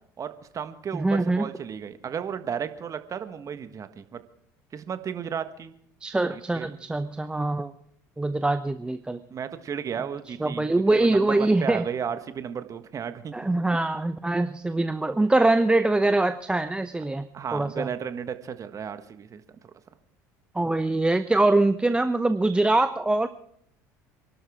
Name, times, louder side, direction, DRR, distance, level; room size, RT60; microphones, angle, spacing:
voice 1, 0.2-4.2 4.7-5.7 6.3-6.8 9.3-13.3 14.1-14.2 17.3-19.7, right 7 dB, 40° right, 10 dB, 1.6 m, -34 dB
voice 2, 0.9-1.5 6.0-7.7 8.2-9.2 10.4-11.8 13.3-17.9 20.5-23.3, right 2 dB, 10° right, 11 dB, 0.7 m, -23 dB
27.5 x 12.0 x 3.7 m, 0.69 s
hypercardioid pair, 65°, 9 cm